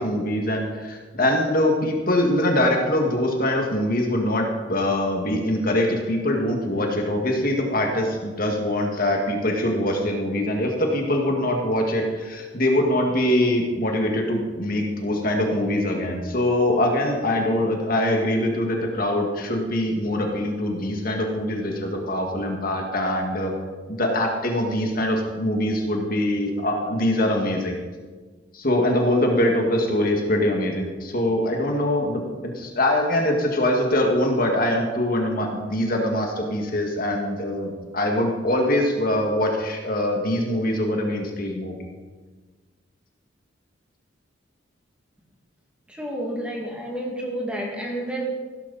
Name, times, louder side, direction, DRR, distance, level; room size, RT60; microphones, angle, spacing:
voice 1, 0.0-23.5 23.9-27.8 28.5-32.2 32.5-41.8, left 1 dB, 45° left, 1 dB, 2.0 m, -23 dB
voice 2, 45.9-48.3, right 1 dB, 5° right, -1 dB, 2.3 m, -30 dB
16.0 x 13.0 x 4.2 m, 1.4 s
head